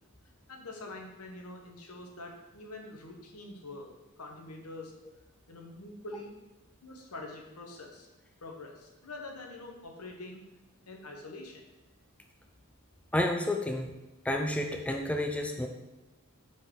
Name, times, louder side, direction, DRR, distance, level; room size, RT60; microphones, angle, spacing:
voice 1, 0.5-3.9 4.2-4.9 5.5-6.3 6.8-8.1 8.4-10.4 10.9-11.6, left 2 dB, 70° left, 2 dB, 1.1 m, -45 dB
voice 2, 13.1-13.9 14.2-15.7, left 1 dB, 5° left, 3 dB, 0.3 m, -30 dB
8.0 x 4.1 x 3.8 m, 1.0 s
head